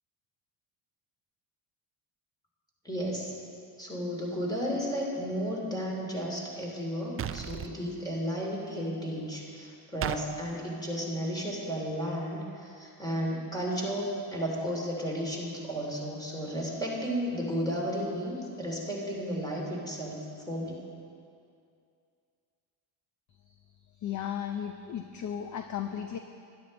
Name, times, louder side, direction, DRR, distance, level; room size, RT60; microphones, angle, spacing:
voice 1, 2.8-3.3 3.8-20.8, equal, 10° left, -2 dB, 3.1 m, -33 dB
sound 1, 7.2-7.7 10.0-10.2, right 10 dB, 30° right, 0.4 m, -33 dB
voice 2, 24.0-26.2, left 9 dB, 40° left, 7 dB, 0.6 m, -35 dB
12.0 x 11.5 x 4.2 m, 2.4 s
cardioid pair, 90°, 47 cm